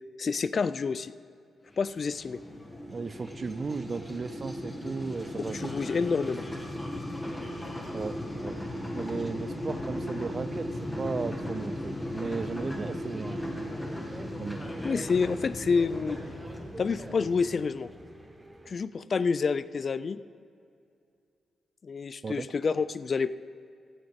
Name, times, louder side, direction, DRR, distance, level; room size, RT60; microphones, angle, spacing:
voice 1, 0.2-1.1 1.8-2.4 5.5-6.4 14.8-16.2 16.8-17.9 18.7-20.2 21.8-23.3, left 5 dB, 50° left, 16 dB, 0.4 m, -28 dB
sound 1, 1.7-18.4, left 1 dB, 15° left, 2.0 m, -37 dB
voice 2, 2.9-5.8 7.9-8.6 8.9-13.5 14.4-14.7 22.2-22.5, right 4 dB, 45° right, 15 dB, 0.5 m, -35 dB
Subway metro underground, 10.8-18.7, right 2 dB, 25° right, 1.0 m, -49 dB
17.0 x 13.0 x 3.6 m, 2.4 s
supercardioid pair, 55°, 0 cm